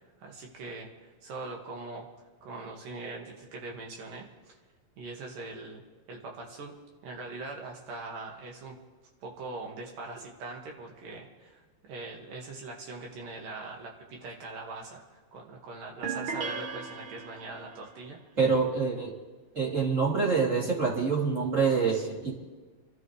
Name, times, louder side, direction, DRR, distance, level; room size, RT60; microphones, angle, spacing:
voice 1, 0.2-2.1 2.4-4.6 5.0-5.8 6.1-6.8 7.0-8.8 9.2-18.2 21.9-22.1, right 3 dB, 70° right, 0 dB, 3.6 m, -42 dB
sound 1, 16.0-17.8, right 5 dB, 55° right, 1.4 m, -36 dB
voice 2, 18.4-19.1 19.5-22.3, right 5 dB, 20° right, -4 dB, 3.3 m, -26 dB
28.0 x 13.0 x 3.3 m, 1.3 s
omnidirectional pair, 4.0 m